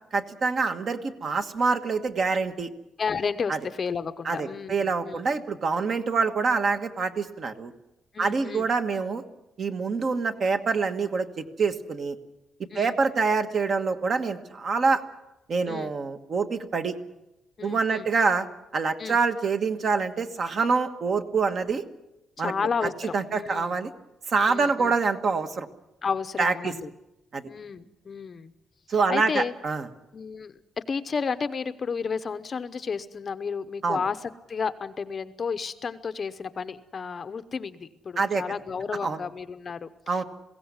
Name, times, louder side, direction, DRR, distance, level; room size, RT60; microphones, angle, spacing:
voice 1, 0.1-2.7 3.5-3.6 4.2-7.7 8.2-9.2 9.6-12.1 12.7-15.0 15.5-17.0 17.6-18.5 18.7-21.8 22.4-22.5 22.8-23.9 24.3-25.7 26.4-26.7 27.3-27.5 28.9-29.8 33.8-34.0 38.2-38.4 39.0-39.2 40.1-40.2, right 4 dB, 40° right, 7 dB, 1.3 m, -26 dB
voice 2, 3.0-5.3 8.1-8.7 12.7-13.0 15.7-15.9 17.6-18.1 19.0-19.2 22.4-23.7 24.5-24.9 26.0-26.9 27.4-28.5 29.1-29.5 30.1-30.5 30.9-40.2, left 5 dB, 30° left, 10 dB, 0.8 m, -32 dB
21.5 x 16.5 x 9.6 m, 0.95 s
cardioid pair, 180°, 0 cm